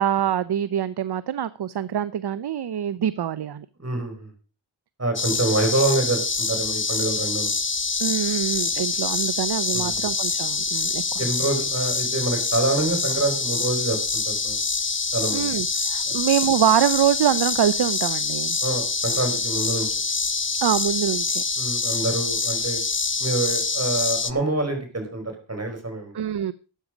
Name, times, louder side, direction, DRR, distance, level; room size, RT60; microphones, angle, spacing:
voice 1, 0.0-3.7 8.0-11.2 15.3-18.6 20.6-21.4 26.1-26.5, right 10 dB, 55° right, 17 dB, 0.7 m, -24 dB
voice 2, 3.8-4.3 5.0-7.5 9.7-10.1 11.2-14.6 15.1-15.5 16.0-16.2 18.6-19.9 21.6-22.8 23.2-26.2, right 2 dB, 30° right, 4 dB, 5.0 m, -26 dB
sound 1, 5.2-24.3, left 4 dB, 25° left, 0.8 m, -26 dB
13.0 x 8.5 x 5.0 m, 0.37 s
cardioid pair, 65°, 47 cm